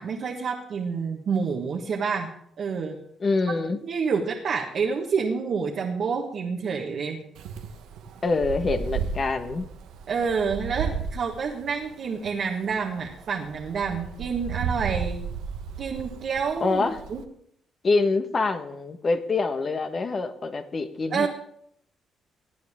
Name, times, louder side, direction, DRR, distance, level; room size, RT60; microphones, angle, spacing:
voice 1, 0.0-2.3 2.6-3.0 3.8-7.3 10.1-15.2 15.8-17.2 21.1-21.3, right 5 dB, 60° right, 0 dB, 1.6 m, -28 dB
voice 2, 3.2-3.8 8.2-9.6 16.6-17.0 17.8-21.3, left 3 dB, 40° left, 7 dB, 1.4 m, -25 dB
Wind, 7.4-17.2, right 6 dB, 90° right, 1.1 m, -34 dB
18.0 x 9.4 x 3.7 m, 0.69 s
cardioid pair, 90°, 0 cm